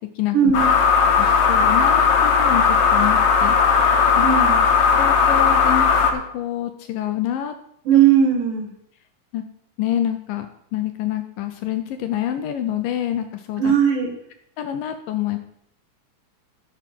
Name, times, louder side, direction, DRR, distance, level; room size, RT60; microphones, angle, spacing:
voice 1, 0.3-0.7 4.2-4.6 7.9-8.7 13.6-14.1, right 8 dB, 65° right, 3 dB, 3.0 m, -17 dB
sound 1, 0.5-6.1, left 5 dB, 60° left, 2.1 m, -17 dB
voice 2, 1.2-4.3 4.8-7.6 7.9-8.0 9.3-9.4 9.8-10.5 10.7-13.7 14.6-15.4, left 11 dB, 75° left, 7 dB, 2.2 m, -27 dB
12.0 x 6.1 x 6.0 m, 0.72 s
omnidirectional pair, 4.4 m